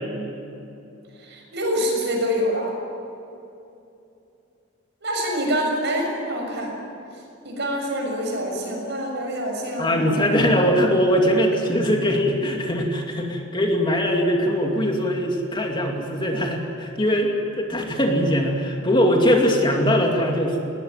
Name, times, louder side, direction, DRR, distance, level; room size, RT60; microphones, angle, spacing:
voice 1, 1.1-2.7 5.0-6.7 7.4-10.4, equal, 60° right, 1 dB, 6.7 m, -26 dB
voice 2, 9.8-20.6, equal, 25° left, 1 dB, 2.6 m, -21 dB
21.0 x 19.0 x 9.6 m, 2.8 s
head